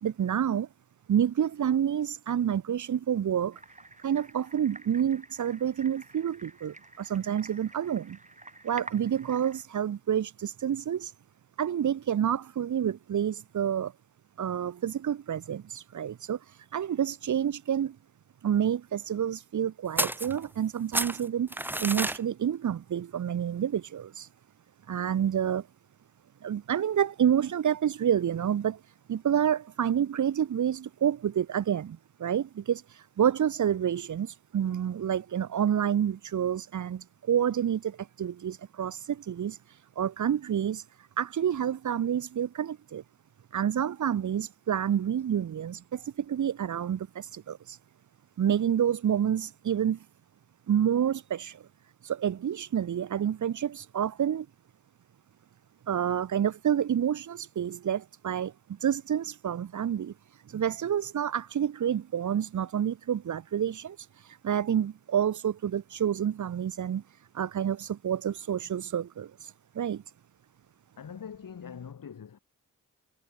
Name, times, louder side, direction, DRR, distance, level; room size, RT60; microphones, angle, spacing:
voice 1, 0.0-0.7 1.1-3.6 4.0-8.2 8.6-11.1 11.6-13.9 14.4-18.0 18.4-24.3 24.9-25.7 26.4-43.0 43.5-47.8 48.4-50.1 50.7-51.7 52.0-54.5 55.9-58.5 58.8-70.0, right 9 dB, 60° right, 0.9 m, -29 dB
sound 1, 3.5-9.6, right 2 dB, 20° right, 5.5 m, -49 dB
sound 2, 20.0-20.7 20.9-22.2, right 1 dB, 5° right, 0.8 m, -30 dB
voice 2, 71.0-72.4, left 7 dB, 75° left, 6.8 m, -43 dB
cardioid pair, 65°, 34 cm